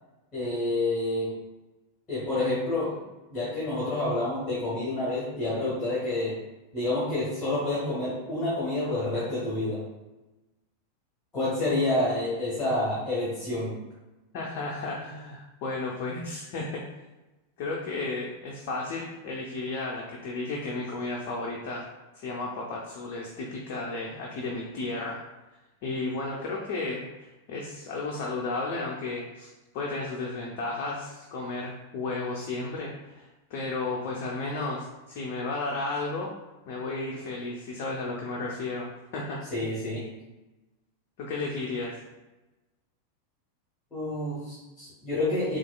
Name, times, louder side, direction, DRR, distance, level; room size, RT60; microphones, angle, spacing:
voice 1, 0.3-1.3 2.1-3.0 3.3-6.3 6.7-9.8 11.3-13.7 39.5-40.0 43.9-45.6, left 2 dB, 20° left, -8 dB, 1.2 m, -28 dB
voice 2, 14.3-16.8 17.6-21.8 22.2-25.2 25.8-36.3 36.7-39.4 41.2-42.0, left 3 dB, 45° left, -3 dB, 0.5 m, -33 dB
4.2 x 2.5 x 2.2 m, 1.1 s
figure-of-eight pair, 90°, 0 cm